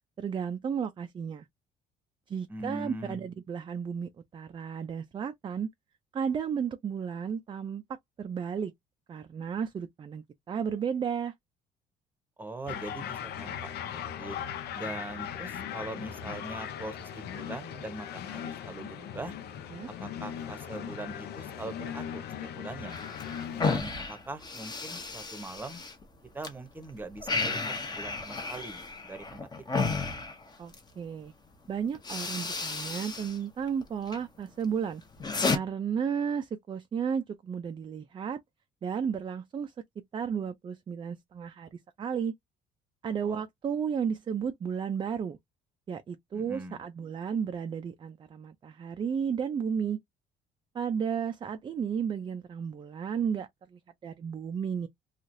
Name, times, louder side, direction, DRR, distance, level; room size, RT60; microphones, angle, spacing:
voice 1, 0.2-1.5 2.3-5.7 6.1-7.8 8.2-8.7 9.1-11.3 19.7-19.9 30.6-31.3 31.7-35.0 35.5-38.4 38.8-42.3 43.0-45.4 45.9-50.0 50.7-54.9, right 7 dB, 30° right, 0.4 m, -33 dB
voice 2, 2.5-3.3 12.4-14.4 14.7-19.4 20.0-23.0 23.5-25.8 26.3-29.8 43.2-43.4 46.3-46.8, right 2 dB, 10° right, 0.9 m, -42 dB
sound 1, 12.7-23.8, left 9 dB, 75° left, 0.6 m, -39 dB
sound 2, 22.9-26.5 26.8-30.9 31.5-31.7 32.0-33.4 33.7-34.2 34.6-35.6, left 4 dB, 25° left, 0.8 m, -33 dB
3.0 x 2.4 x 2.6 m
cardioid pair, 110°, 17 cm